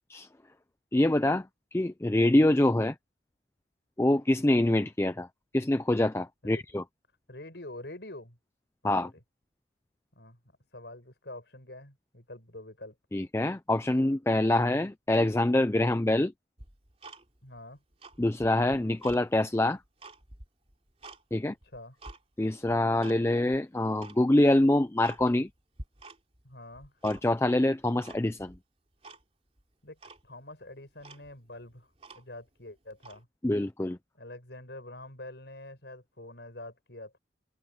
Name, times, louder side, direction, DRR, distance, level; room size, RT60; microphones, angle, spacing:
voice 1, 0.9-1.5 1.7-2.9 4.0-5.3 5.5-6.8 8.8-9.1 13.1-16.3 18.2-19.8 21.3-21.5 22.4-25.5 27.0-28.5 33.4-34.0, left 1 dB, 15° left, 0.4 m, -25 dB
voice 2, 7.3-8.4 8.8-8.9 10.1-10.4 10.7-12.9 17.4-17.8 21.4-22.0 26.4-26.9 29.8-30.0 30.2-31.9 32.1-33.3 34.2-37.2, left 1 dB, 65° left, 6.5 m, -46 dB
Tick-tock, 16.6-17.6 17.9-19.2 19.7-21.2 21.6-22.2 22.7-23.2 23.5-23.6 24.0-24.2 24.6-24.7 25.0-25.5 25.8-26.4 26.7-27.5 28.0-28.6 29.0-29.2 29.6-29.7 30.0-30.2 30.7-30.8 31.0-32.5 33.0-33.2, right 2 dB, 35° right, 3.5 m, -48 dB
head